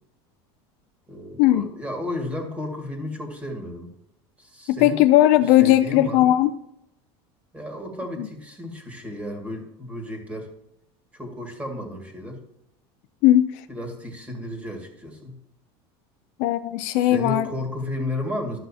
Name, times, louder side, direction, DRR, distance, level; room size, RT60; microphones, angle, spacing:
voice 1, 1.1-3.9 4.4-5.0 5.4-6.3 7.5-10.5 11.1-12.4 13.7-15.4 16.9-18.6, left 1 dB, 10° right, 2 dB, 2.0 m, -33 dB
voice 2, 4.7-6.5 8.2-8.3 13.2-13.5 16.4-17.5, left 14 dB, 60° left, 11 dB, 0.5 m, -17 dB
12.5 x 6.1 x 2.8 m, 0.82 s
supercardioid pair, 140°, 13 cm